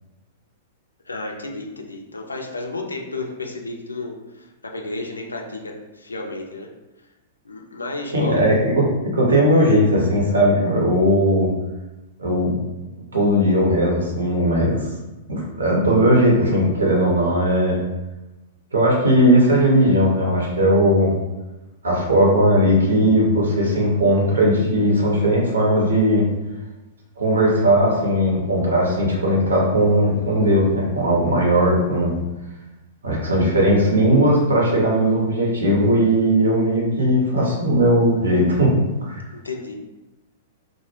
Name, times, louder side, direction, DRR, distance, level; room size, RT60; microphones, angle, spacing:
voice 1, 1.1-6.7 7.4-8.4 39.3-39.7, left 2 dB, 80° left, 1 dB, 0.3 m, -32 dB
voice 2, 8.1-11.5 12.2-12.6 13.1-14.9 15.3-17.8 18.7-21.1 21.8-26.2 27.2-32.1 33.0-39.2, equal, 70° right, -3 dB, 0.7 m, -18 dB
2.1 x 2.0 x 3.1 m, 1.1 s
figure-of-eight pair, 105°, 0 cm